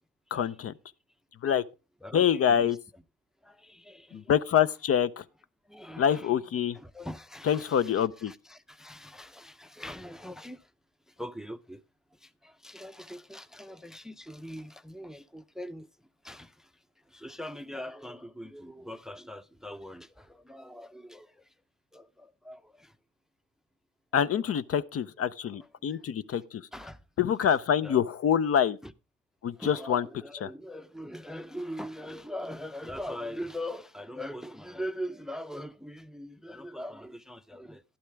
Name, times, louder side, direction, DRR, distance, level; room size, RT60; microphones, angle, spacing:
voice 1, 0.3-0.7 1.4-1.6 2.1-2.8 4.1-5.2 6.0-6.8 7.4-8.3 24.1-26.6 27.2-28.8 29.4-30.1 30.4-30.5, left 8 dB, 50° left, 0.6 m, -26 dB
voice 2, 2.0-2.8 3.4-4.4 5.7-6.4 6.7-10.7 11.1-11.8 12.1-15.9 16.2-21.5 21.9-23.0 25.9-26.1 26.7-27.0 27.4-27.5 27.8-28.0 28.8-28.9 29.5-37.8, equal, ahead, 0.6 m, -42 dB
11.5 x 11.5 x 3.4 m
cardioid pair, 90°, 30 cm